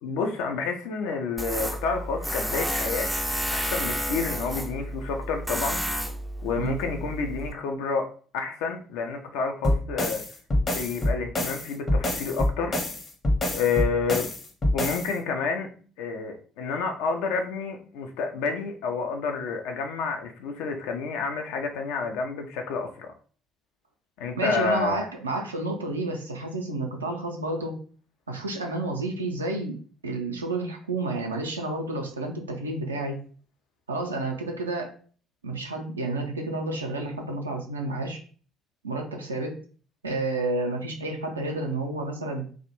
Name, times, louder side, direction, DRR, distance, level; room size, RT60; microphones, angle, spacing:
voice 1, 0.0-3.1 3.5-5.8 6.4-8.1 8.3-10.2 10.7-12.8 13.5-14.3 14.7-15.7 16.0-23.1 24.2-25.0, left 5 dB, 70° left, 4 dB, 0.4 m, -29 dB
Tools, 1.4-7.5, equal, ahead, 0.3 m, -31 dB
sound 1, 9.6-15.1, left 1 dB, 35° left, 0.7 m, -26 dB
voice 2, 24.4-27.8 28.3-29.8 30.0-33.2 33.9-34.9 35.4-38.2 38.8-39.6 40.0-42.5, right 2 dB, 90° right, 3 dB, 0.4 m, -30 dB
2.5 x 2.1 x 2.9 m, 0.42 s
figure-of-eight pair, 55°, 0 cm